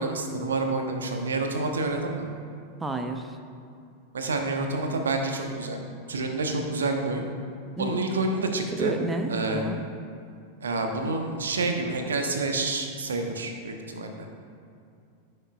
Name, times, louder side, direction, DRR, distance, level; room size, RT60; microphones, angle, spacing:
voice 1, 0.0-2.3 4.1-5.8 6.1-7.2 7.8-8.9 9.3-9.6 10.6-14.3, right 3 dB, 70° right, 4 dB, 0.9 m, -28 dB
voice 2, 2.8-3.4 7.8-8.0 8.7-9.8, right 2 dB, 10° right, 6 dB, 0.7 m, -30 dB
14.0 x 6.7 x 2.4 m, 2.4 s
figure-of-eight pair, 90°, 0 cm